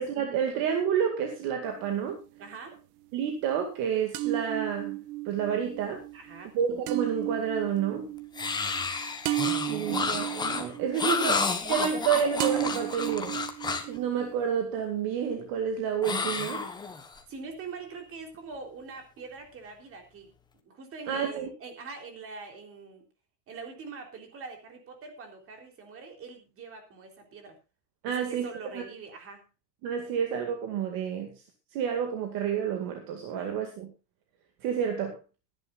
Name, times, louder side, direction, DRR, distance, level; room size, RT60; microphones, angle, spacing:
voice 1, 0.0-2.2 3.1-5.0 5.3-6.0 6.5-8.1 9.7-11.4 11.7-13.4 13.8-16.7 21.1-21.5 28.0-28.5 28.7-28.8 29.8-31.4 31.7-33.9 34.6-35.2, right 8 dB, 45° right, 5 dB, 2.2 m, -29 dB
sound 1, 1.6-2.5 4.1-12.1 12.4-14.5, right 17 dB, 70° right, 1.4 m, -34 dB
voice 2, 2.4-2.8 6.1-6.6 9.6-10.1 11.2-11.3 17.3-20.3 20.7-23.1 23.5-27.6 28.1-29.4 33.3-33.7, right 4 dB, 25° right, 4 dB, 3.6 m, -44 dB
sound 2, 8.3-14.0 16.0-17.2, left 4 dB, 10° left, 1.1 m, -31 dB
23.0 x 10.5 x 2.5 m, 0.29 s
supercardioid pair, 160°, 49 cm